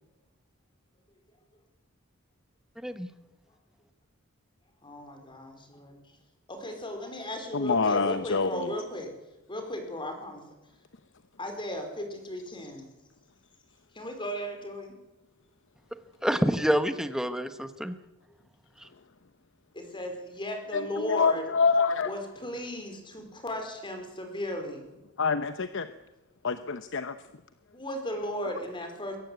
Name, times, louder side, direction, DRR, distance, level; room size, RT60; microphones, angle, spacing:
voice 1, 4.8-6.0 6.5-9.1 9.5-10.4 11.4-12.9 13.9-14.9 19.7-21.4 22.0-24.8 27.7-29.2, left 1 dB, 25° left, 5 dB, 4.7 m, -36 dB
voice 2, 7.5-8.7 20.7-22.1 25.2-25.9 26.4-27.2, left 4 dB, 60° left, 11 dB, 0.9 m, -26 dB
voice 3, 16.2-17.9, equal, 5° right, 10 dB, 1.2 m, -27 dB
22.5 x 17.5 x 8.2 m, 0.99 s
head